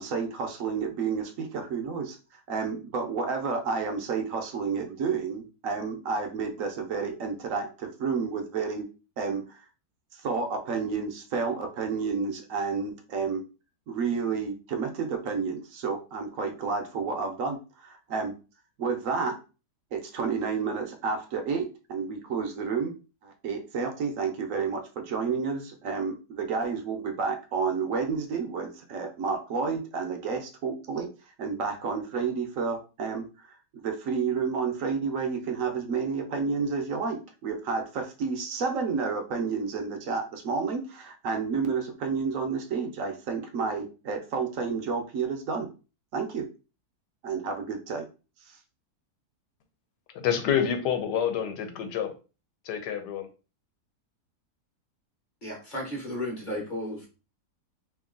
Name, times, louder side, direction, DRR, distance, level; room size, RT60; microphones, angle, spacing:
voice 1, 0.0-8.9 9.2-9.6 10.1-13.4 13.9-18.3 18.8-19.4 19.9-22.9 23.2-31.1 31.4-45.7 46.1-46.4 47.2-48.1 48.5-48.6, right 5 dB, 60° right, 1.0 m, -30 dB
voice 2, 50.1-52.1 52.6-53.3, left 8 dB, 85° left, 1.4 m, -27 dB
voice 3, 55.4-57.1, left 1 dB, 35° left, 1.1 m, -34 dB
3.0 x 2.7 x 3.7 m
omnidirectional pair, 1.8 m